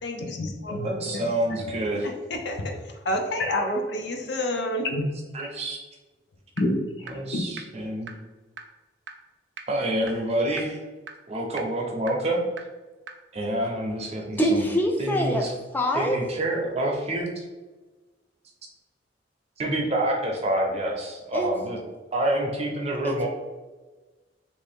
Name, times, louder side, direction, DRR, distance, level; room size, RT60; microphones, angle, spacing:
voice 1, 0.0-1.6 2.0-5.0 6.6-7.4, left 1 dB, 70° left, 0.5 m, -29 dB
voice 2, 0.8-2.1 5.3-5.8 7.0-8.1 9.7-10.8 11.3-12.4 13.3-14.6 15.0-15.5 15.9-17.4 19.6-21.8 22.1-23.3, right 1 dB, 35° right, 0.6 m, -27 dB
sound 1, 6.6-6.7 7.1-7.2 7.6-7.7 8.1-8.2 8.6-8.7 9.1-9.2 9.6-9.7 10.1-10.2 10.6-10.7 11.1-11.2 11.6-11.7 12.1-12.2 12.6-12.7 13.1-13.2, right 5 dB, 75° right, 0.4 m, -37 dB
voice 3, 14.4-15.5 15.7-16.2 21.3-21.5 23.0-23.3, equal, 10° left, 0.4 m, -24 dB
3.0 x 2.7 x 3.4 m
head